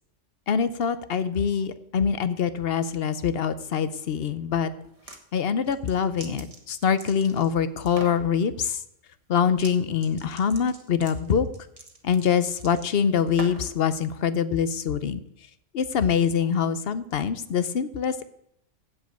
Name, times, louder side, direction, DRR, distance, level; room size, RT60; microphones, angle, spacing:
voice 1, 0.5-4.7 5.3-8.8 9.3-11.5 12.0-15.2 15.7-18.2, left 7 dB, 55° left, 13 dB, 0.9 m, -24 dB
sound 1, 4.8-5.2 5.7-7.5 7.9-8.2 9.5-9.8 10.0-13.8, right 3 dB, 30° right, 1.5 m, -42 dB
15.5 x 5.2 x 7.9 m, 0.76 s
omnidirectional pair, 1.3 m